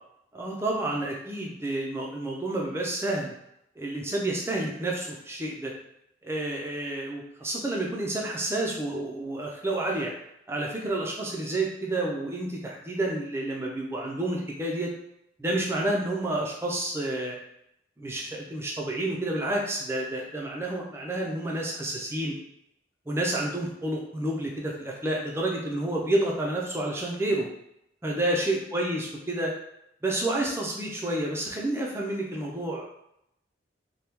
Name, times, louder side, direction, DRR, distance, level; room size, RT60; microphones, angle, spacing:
voice 1, 0.3-3.3 3.8-5.7 6.2-10.1 10.5-14.9 15.4-17.4 18.0-22.3 23.1-27.5 28.0-29.5 30.0-32.8, right 1 dB, 15° right, -2 dB, 0.5 m, -29 dB
2.9 x 2.2 x 3.4 m, 0.79 s
head